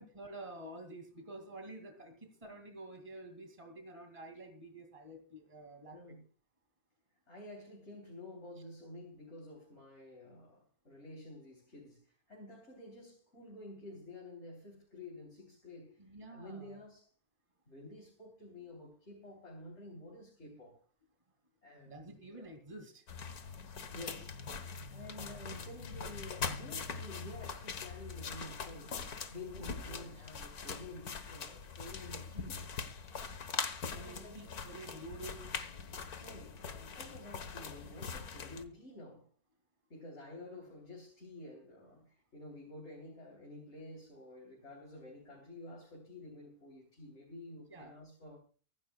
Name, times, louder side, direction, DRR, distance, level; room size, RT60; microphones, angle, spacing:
voice 1, 0.0-6.2 16.0-16.8 21.8-23.0 30.2-30.3 33.9-35.5 37.8-37.9 47.7-47.9, right 2 dB, 20° right, 2.5 m, -49 dB
voice 2, 5.9-6.2 7.3-16.0 16.3-17.1 17.7-20.8 21.6-22.5 23.9-24.4 24.9-32.7 33.9-34.6 36.2-39.3 39.9-48.4, left 1 dB, 50° left, 3.9 m, -50 dB
sound 1, 23.1-38.6, left 5 dB, 85° left, 1.9 m, -42 dB
24.0 x 11.5 x 2.3 m
omnidirectional pair, 1.5 m